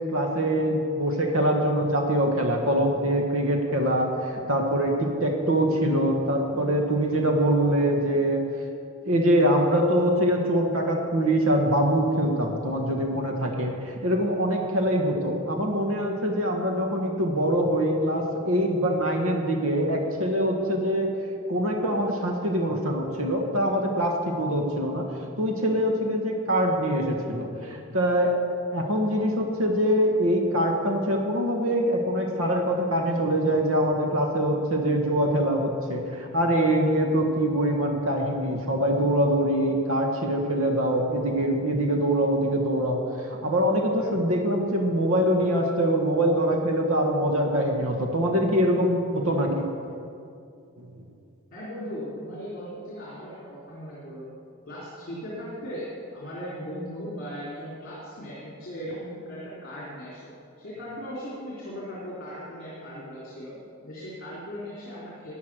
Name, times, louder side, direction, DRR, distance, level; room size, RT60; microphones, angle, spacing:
voice 1, 0.0-8.4 9.0-21.1 21.5-25.1 25.4-28.3 28.7-43.0 43.3-49.7 50.8-51.0, equal, 70° right, 2 dB, 1.5 m, -24 dB
voice 2, 51.5-54.3 54.7-55.9 56.1-60.3 60.6-63.5 63.8-65.3, equal, 45° left, -7 dB, 3.2 m, -38 dB
14.5 x 9.5 x 6.2 m, 2.5 s
head